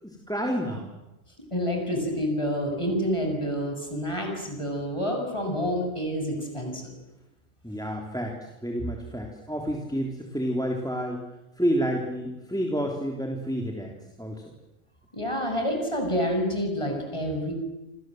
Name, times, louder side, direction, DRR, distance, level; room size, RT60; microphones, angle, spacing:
voice 1, 0.0-0.9 7.6-11.2 11.6-13.9 14.2-14.4, equal, 5° left, 1 dB, 3.3 m, -29 dB
voice 2, 1.5-6.8 15.1-17.5, equal, 25° left, 3 dB, 7.4 m, -28 dB
28.0 x 27.5 x 7.8 m, 0.97 s
omnidirectional pair, 1.3 m